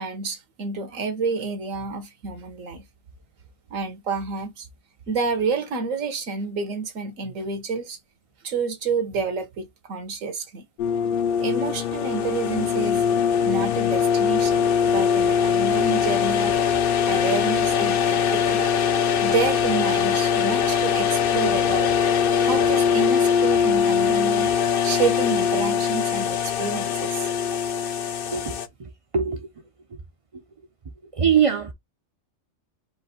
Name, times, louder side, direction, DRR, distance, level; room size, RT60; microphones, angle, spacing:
voice 1, 0.0-2.9 3.7-4.7 5.1-8.0 8.4-10.6 11.4-13.0 13.4-16.6 17.1-18.7 19.2-21.9 22.4-24.5 24.8-27.3, right 4 dB, 90° right, 1.4 m, -29 dB
sound 1, 10.8-28.7, left 7 dB, 55° left, 0.7 m, -22 dB
voice 2, 28.3-29.5 31.2-31.7, right 7 dB, 55° right, 0.3 m, -23 dB
4.8 x 2.5 x 4.0 m
omnidirectional pair, 1.3 m